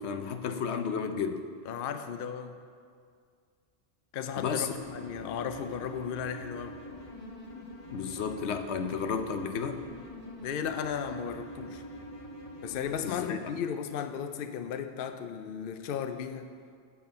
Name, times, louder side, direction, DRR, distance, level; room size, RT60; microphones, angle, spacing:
voice 1, 0.0-1.5 4.4-4.7 7.9-9.8 13.0-13.4, left 6 dB, 85° left, 7 dB, 1.0 m, -32 dB
voice 2, 1.7-2.6 4.1-6.8 10.4-11.8 12.6-16.5, left 8 dB, 60° left, 9 dB, 0.7 m, -35 dB
sound 1, 4.8-12.9, equal, 30° left, 1.1 m, -44 dB
11.0 x 4.4 x 7.6 m, 2.1 s
omnidirectional pair, 1.1 m